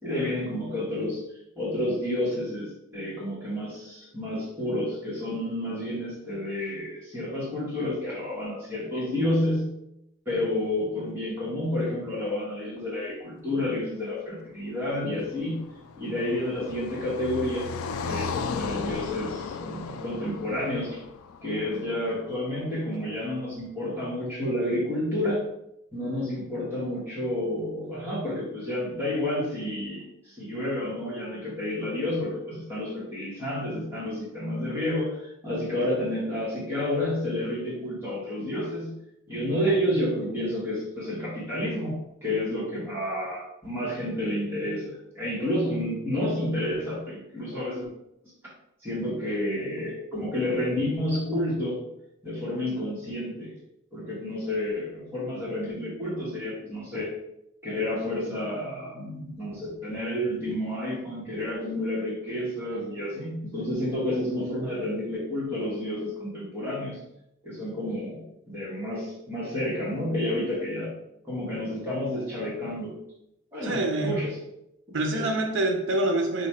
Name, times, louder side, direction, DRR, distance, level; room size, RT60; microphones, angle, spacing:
voice 1, 0.0-1.2 1.5-9.7 10.2-15.6 16.0-17.7 18.0-21.0 21.4-25.5 25.9-39.0 39.3-47.9 48.8-51.8 52.2-53.5 53.9-57.1 57.6-67.0 67.4-70.9 71.2-73.0 73.5-74.3 74.9-75.3, left 1 dB, 10° right, -8 dB, 1.3 m, -30 dB
Car passing by, 15.1-22.3, left 5 dB, 80° left, 0.3 m, -36 dB
voice 2, 73.6-74.2 74.9-76.5, right 2 dB, 60° right, 4 dB, 0.6 m, -26 dB
3.0 x 2.4 x 4.2 m, 0.82 s
head